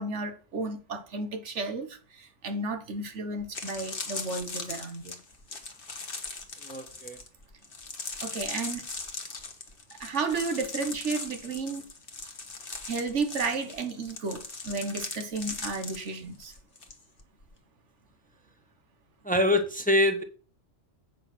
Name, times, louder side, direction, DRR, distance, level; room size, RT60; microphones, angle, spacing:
voice 1, 0.0-5.2 8.2-8.8 10.0-11.8 12.9-16.5, right 3 dB, 80° right, 1.5 m, -33 dB
sound 1, 3.4-16.9 17.2-17.5, left 4 dB, 50° left, 1.4 m, -39 dB
voice 2, 6.6-7.2 19.2-20.2, left 1 dB, 10° left, 0.9 m, -25 dB
8.3 x 4.9 x 6.0 m
omnidirectional pair, 1.2 m